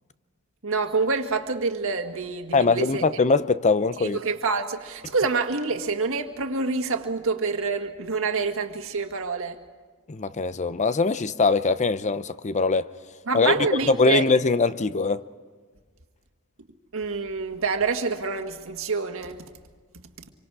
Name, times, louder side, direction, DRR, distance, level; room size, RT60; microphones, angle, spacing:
voice 1, 0.6-3.0 4.0-9.6 13.3-14.3 16.9-19.4, right 4 dB, 65° right, 1.8 m, -27 dB
voice 2, 2.5-4.2 10.1-12.9 13.3-13.6 13.9-15.2, left 4 dB, 35° left, 0.7 m, -22 dB
27.0 x 24.5 x 4.8 m
head